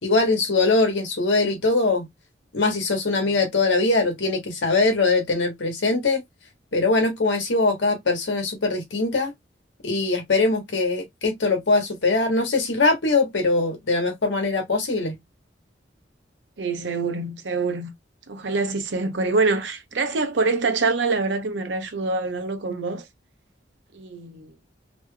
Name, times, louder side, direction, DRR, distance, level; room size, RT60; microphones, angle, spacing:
voice 1, 0.0-2.1 2.5-6.2 6.7-9.3 9.8-15.2, left 3 dB, 85° left, 1.0 m, -22 dB
voice 2, 16.6-17.9 18.3-23.1 23.9-24.5, right 3 dB, 80° right, 0.8 m, -25 dB
2.9 x 2.2 x 3.1 m
head